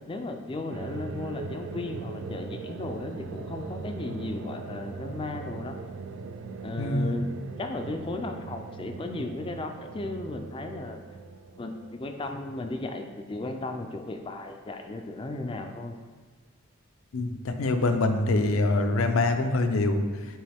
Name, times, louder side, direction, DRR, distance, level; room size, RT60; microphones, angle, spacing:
voice 1, 0.1-5.8 6.6-7.3 7.6-11.0 11.6-16.0, left 2 dB, 25° left, 5 dB, 0.4 m, -35 dB
sound 1, 0.7-12.8, right 4 dB, 65° right, 0.3 m, -40 dB
voice 2, 6.8-7.2 17.1-20.0, left 2 dB, 80° left, 7 dB, 0.5 m, -24 dB
9.0 x 3.1 x 3.5 m, 1.5 s
head